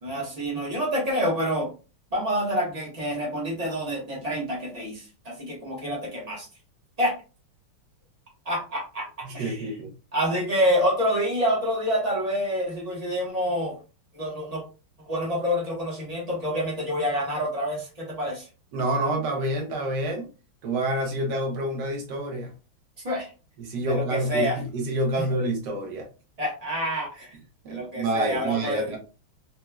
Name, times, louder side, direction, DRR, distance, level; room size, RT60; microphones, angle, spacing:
voice 1, 0.0-1.7 2.1-6.5 7.0-7.1 8.4-9.1 9.3-9.6 10.1-13.7 14.1-14.6 15.1-18.4 23.0-23.3 23.8-24.6 26.4-27.3 27.7-29.0, equal, 35° right, -3 dB, 0.6 m, -27 dB
voice 2, 9.2-9.9 18.7-20.3 20.6-22.6 23.6-26.1 27.6-29.0, right 1 dB, 65° right, 1 dB, 1.3 m, -28 dB
4.1 x 2.1 x 2.2 m, 0.33 s
omnidirectional pair, 2.3 m